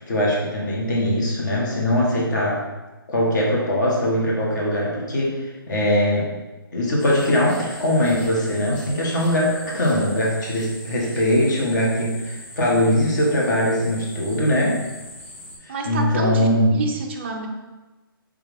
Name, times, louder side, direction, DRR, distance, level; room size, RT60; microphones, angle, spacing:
voice 1, 0.1-2.6 3.1-6.3 6.7-14.8 15.6-16.8, left 1 dB, 50° left, -3 dB, 1.1 m, -21 dB
sound 1, 7.0-15.6, left 1 dB, 30° left, 0.7 m, -41 dB
voice 2, 15.7-17.5, right 3 dB, 30° right, 1 dB, 0.3 m, -28 dB
3.6 x 3.2 x 3.3 m, 1.2 s
hypercardioid pair, 165°, 12 cm